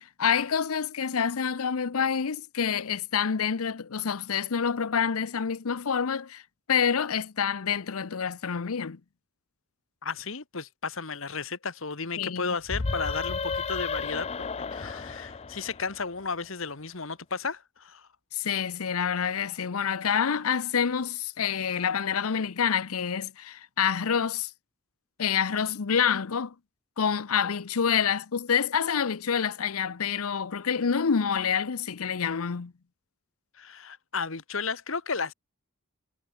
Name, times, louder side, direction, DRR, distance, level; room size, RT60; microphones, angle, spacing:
voice 1, 0.0-6.4 6.7-9.0 12.2-12.5 18.3-24.5 25.2-26.5 27.0-32.7, left 7 dB, 80° left, 0.7 m, -27 dB
voice 2, 10.0-18.1 33.5-35.3, left 5 dB, 65° left, 1.6 m, -34 dB
sound 1, 12.7-16.3, left 4 dB, 30° left, 0.5 m, -33 dB
head